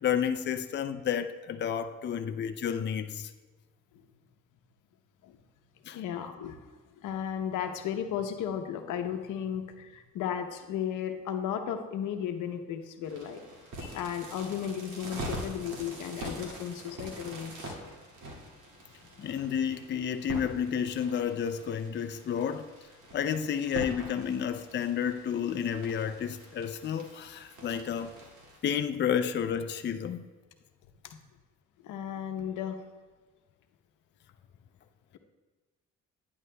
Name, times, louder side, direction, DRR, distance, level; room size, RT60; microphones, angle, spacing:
voice 1, 0.0-3.3 5.9-6.0 19.2-22.7 23.1-28.1 28.6-30.3, left 8 dB, 40° left, 0.4 m, -31 dB
voice 2, 5.9-6.6 6.9-13.4 13.8-17.8 31.0-31.2 31.8-32.8, left 9 dB, 85° left, 0.8 m, -35 dB
sound 1, 13.0-28.6, right 1 dB, 85° right, 2.1 m, -44 dB
11.0 x 9.4 x 2.2 m
cardioid pair, 90°, 30 cm